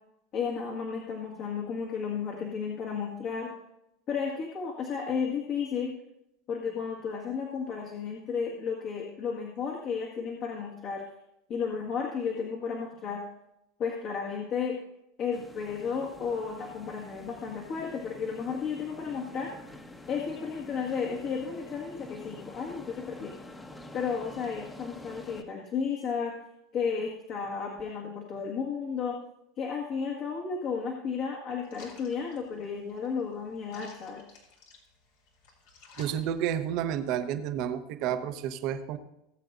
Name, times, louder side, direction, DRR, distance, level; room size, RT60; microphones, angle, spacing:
voice 1, 0.3-3.5 4.1-5.9 6.5-11.0 11.5-13.2 13.8-14.8 15.2-19.5 20.1-23.3 23.9-26.4 26.7-29.2 29.6-34.2, left 6 dB, 50° left, -2 dB, 1.8 m, -33 dB
sound 1, 15.3-25.4, left 1 dB, 15° left, 1.2 m, -47 dB
sound 2, 31.7-37.1, left 4 dB, 70° left, 2.8 m, -55 dB
voice 2, 36.0-39.0, right 10 dB, 55° right, 9 dB, 1.0 m, -30 dB
18.5 x 7.8 x 2.6 m, 0.84 s
hypercardioid pair, 95°, 0 cm